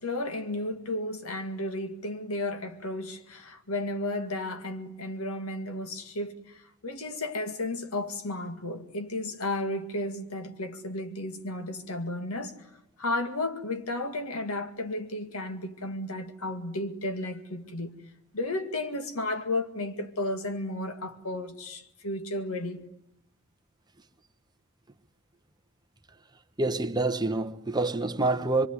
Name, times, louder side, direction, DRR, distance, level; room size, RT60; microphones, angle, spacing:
voice 1, 0.0-12.7 13.0-18.0 18.3-22.9, left 2 dB, 75° left, 2.1 m, -33 dB
voice 2, 26.6-28.7, right 2 dB, 20° right, 1.1 m, -27 dB
24.5 x 24.0 x 9.7 m
head